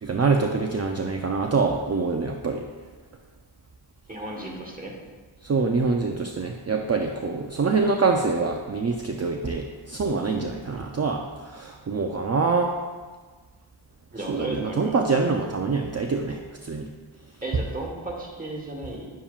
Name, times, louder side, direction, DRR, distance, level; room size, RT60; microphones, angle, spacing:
voice 1, 0.0-2.6 5.4-11.2 11.5-12.7 14.3-16.4 16.6-16.9, right 4 dB, 35° right, 3 dB, 0.5 m, -25 dB
voice 2, 4.1-5.0 14.1-15.0 17.4-19.1, right 2 dB, 20° right, -2 dB, 1.5 m, -34 dB
8.6 x 7.0 x 2.4 m, 1.4 s
wide cardioid pair, 60°, 46 cm